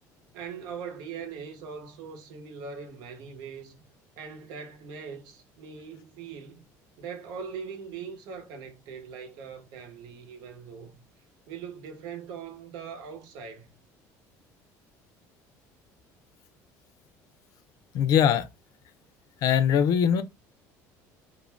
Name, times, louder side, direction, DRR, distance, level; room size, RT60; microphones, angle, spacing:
voice 1, 0.3-3.8 4.2-6.7 7.0-11.0 11.5-13.7, right 6 dB, 75° right, 0.8 m, -41 dB
voice 2, 17.9-18.5 19.4-20.2, left 8 dB, 60° left, 0.5 m, -21 dB
2.5 x 2.1 x 3.2 m
cardioid pair, 120°, 7 cm